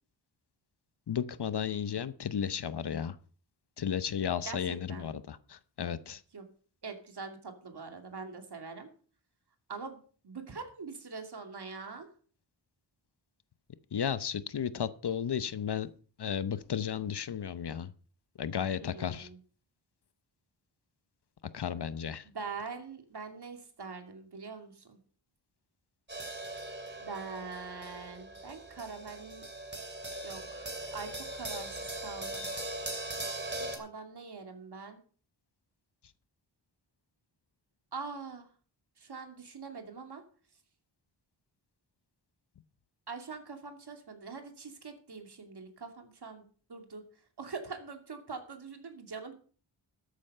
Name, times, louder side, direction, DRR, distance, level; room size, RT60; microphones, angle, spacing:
voice 1, 1.1-3.2 3.8-6.2 13.9-15.9 16.2-17.9 18.4-19.3 21.5-22.2, left 8 dB, 60° left, 14 dB, 0.8 m, -34 dB
voice 2, 4.4-5.1 6.3-6.4 6.8-8.9 9.7-10.0 10.2-12.1 18.8-19.4 22.2-25.0 27.0-29.4 30.2-32.5 33.6-35.0 37.9-38.5 39.0-40.2 43.1-47.0 47.4-49.3, right 4 dB, 55° right, 5 dB, 2.6 m, -43 dB
sound 1, 26.1-33.8, right 1 dB, 25° right, 2.8 m, -40 dB
13.5 x 8.6 x 5.5 m, 0.42 s
wide cardioid pair, 100°, 46 cm